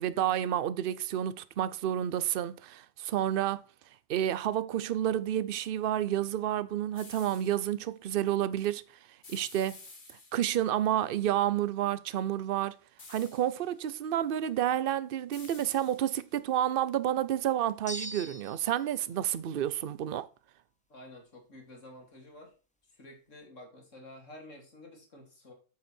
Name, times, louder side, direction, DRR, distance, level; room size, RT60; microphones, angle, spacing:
voice 1, 0.0-3.7 4.1-8.8 9.3-9.8 10.3-12.8 13.1-20.3, right 11 dB, 55° right, 0.7 m, -30 dB
sound 1, 6.9-7.7 9.2-10.7 13.0-13.8 15.3-16.4, left 3 dB, 40° left, 1.8 m, -52 dB
sound 2, 17.9-18.8, equal, 10° left, 0.4 m, -41 dB
voice 2, 20.9-22.5 22.9-25.5, left 1 dB, 75° left, 3.3 m, -50 dB
8.1 x 8.1 x 4.4 m
omnidirectional pair, 1.3 m